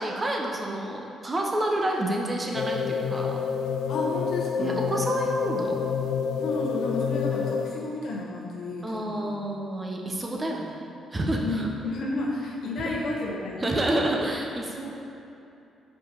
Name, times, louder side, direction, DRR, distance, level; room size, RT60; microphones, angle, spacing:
voice 1, 0.0-3.4 4.6-5.9 8.8-10.8 11.1-11.7 12.8-13.0 13.6-15.0, right 1 dB, 25° right, 0 dB, 0.9 m, -29 dB
sound 1, 2.5-8.0, left 6 dB, 90° left, 0.4 m, -28 dB
voice 2, 3.9-4.8 6.4-9.4 11.4-13.6, left 2 dB, 70° left, -2 dB, 1.2 m, -31 dB
5.1 x 4.5 x 5.9 m, 2.8 s
cardioid pair, 90°, 0 cm